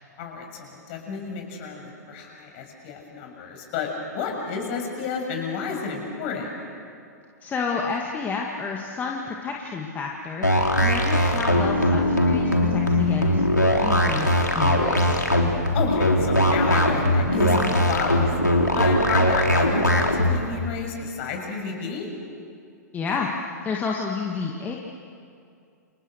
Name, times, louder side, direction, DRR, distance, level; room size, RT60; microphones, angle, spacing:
voice 1, 0.2-6.5 15.5-18.3 18.8-22.1, left 5 dB, 40° left, 2 dB, 7.0 m, -31 dB
voice 2, 7.4-13.4 13.8-14.3 14.5-15.2 22.9-24.8, left 5 dB, 20° left, -1 dB, 2.2 m, -30 dB
sound 1, 10.4-20.4, left 1 dB, 90° left, 3.7 m, -20 dB
29.5 x 29.0 x 6.7 m, 2.4 s
figure-of-eight pair, 105°, 9 cm